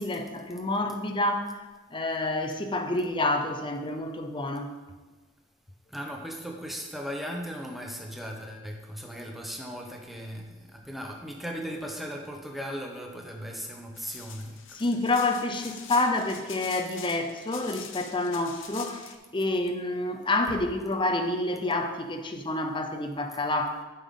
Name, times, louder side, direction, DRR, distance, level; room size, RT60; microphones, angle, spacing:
voice 1, 0.0-4.7 14.7-23.8, left 2 dB, 20° left, 5 dB, 0.6 m, -28 dB
voice 2, 5.9-14.6, equal, ahead, 1 dB, 0.9 m, -37 dB
sound 1, 13.9-19.2, left 7 dB, 60° left, 0.8 m, -44 dB
12.5 x 5.5 x 3.7 m, 1.3 s
head